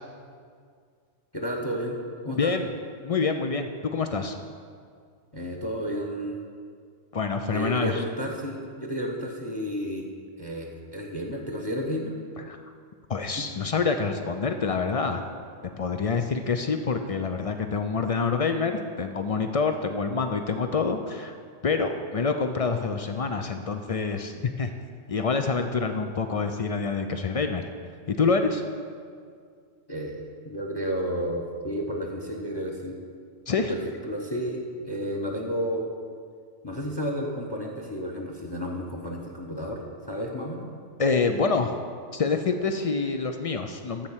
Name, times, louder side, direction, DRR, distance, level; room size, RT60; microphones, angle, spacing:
voice 1, 1.3-2.0 2.2-2.5 5.3-6.4 7.5-10.1 10.4-12.1 13.4-13.5 29.9-33.0 33.7-35.9 36.6-39.8 40.1-40.7, equal, 25° left, 1 dB, 0.8 m, -32 dB
voice 2, 2.3-2.7 3.0-4.4 7.1-8.0 12.5-12.6 13.1-15.2 15.6-21.3 21.6-24.7 25.1-27.7 28.1-28.6 33.5-33.7 41.0-41.8 42.1-44.1, left 4 dB, 60° left, 7 dB, 0.3 m, -26 dB
13.0 x 4.4 x 7.3 m, 2.1 s
omnidirectional pair, 1.3 m